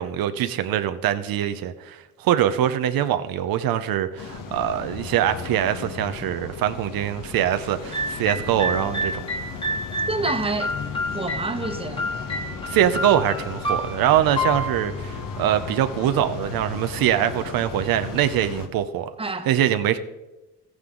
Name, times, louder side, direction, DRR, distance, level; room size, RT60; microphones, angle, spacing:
voice 1, 0.0-9.2 12.7-19.1 19.5-20.0, right 11 dB, 85° right, 0.7 m, -23 dB
sound 1, 4.2-18.7, left 5 dB, 70° left, 1.3 m, -35 dB
sound 2, 7.9-15.9, equal, 15° left, 1.4 m, -30 dB
voice 2, 10.1-10.7 11.1-12.0 19.2-19.5, right 3 dB, 15° right, 1.0 m, -27 dB
13.5 x 9.6 x 3.8 m
cardioid pair, 95°, 34 cm